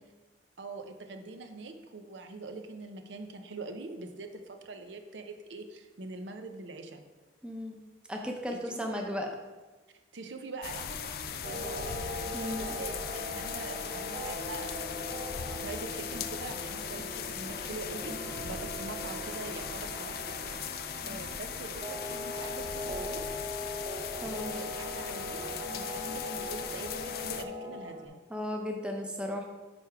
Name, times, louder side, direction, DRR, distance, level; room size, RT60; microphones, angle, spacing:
voice 1, 0.6-7.0 8.5-8.8 10.1-15.3 15.6-18.2 18.4-23.2 24.2-28.2, right 3 dB, 85° right, 6 dB, 0.7 m, -44 dB
voice 2, 7.4-7.8 8.1-9.3 12.3-12.8 21.0-21.2 24.2-24.6 28.3-29.4, left 1 dB, 5° right, 1 dB, 0.6 m, -35 dB
sound 1, 10.6-27.4, left 7 dB, 55° left, 0.4 m, -39 dB
sound 2, 11.4-28.1, left 1 dB, 45° right, 0.8 m, -40 dB
9.2 x 3.3 x 4.8 m, 1.3 s
head